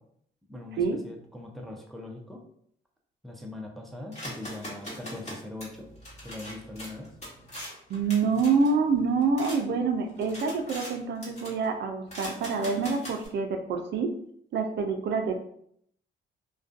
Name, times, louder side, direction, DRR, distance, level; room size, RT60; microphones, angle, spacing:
voice 1, 0.5-2.4 3.2-5.9 6.2-7.1, left 2 dB, ahead, 0 dB, 0.4 m, -41 dB
sound 1, 4.1-9.6 10.0-10.9 11.2-11.7 12.1-13.3, equal, 35° left, 1.1 m, -42 dB
voice 2, 7.6-14.1 14.5-15.3, right 4 dB, 60° right, 5 dB, 0.4 m, -27 dB
2.4 x 2.2 x 2.4 m, 0.67 s
cardioid pair, 90°, 20 cm